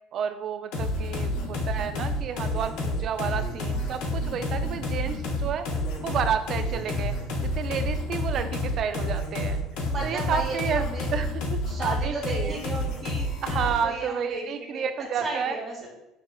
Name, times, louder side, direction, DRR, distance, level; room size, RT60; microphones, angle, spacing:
voice 1, 0.1-5.7 6.0-7.2 7.4-9.6 10.0-10.8 11.1-12.6 13.4-15.6, right 7 dB, 50° right, 9 dB, 0.3 m, -31 dB
sound 1, 0.7-13.9, left 1 dB, 75° left, 0.8 m, -29 dB
voice 2, 9.9-11.1 11.7-14.9 15.2-15.9, right 2 dB, 35° right, -6 dB, 1.0 m, -35 dB
6.3 x 2.4 x 2.3 m, 0.90 s
supercardioid pair, 100°, 0 cm